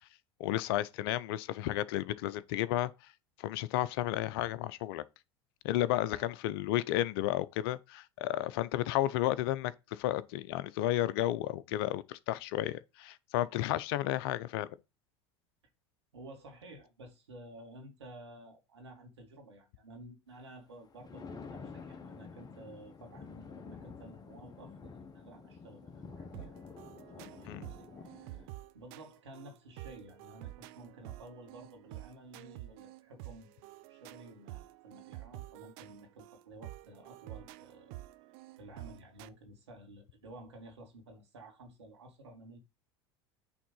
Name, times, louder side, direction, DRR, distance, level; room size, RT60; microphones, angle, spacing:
voice 1, 0.4-2.9 3.4-5.0 5.6-14.7 27.5-27.7, left 14 dB, 65° left, 0.7 m, -32 dB
voice 2, 5.9-6.3 16.1-26.5 27.2-28.5 28.7-37.9 38.6-42.6, right 1 dB, 85° right, 2.7 m, -53 dB
Thunder, 20.7-28.5, left 5 dB, 30° left, 1.4 m, -49 dB
sound 1, 26.3-39.3, right 17 dB, 60° right, 0.6 m, -49 dB
8.6 x 3.7 x 5.5 m
hypercardioid pair, 80°, 14 cm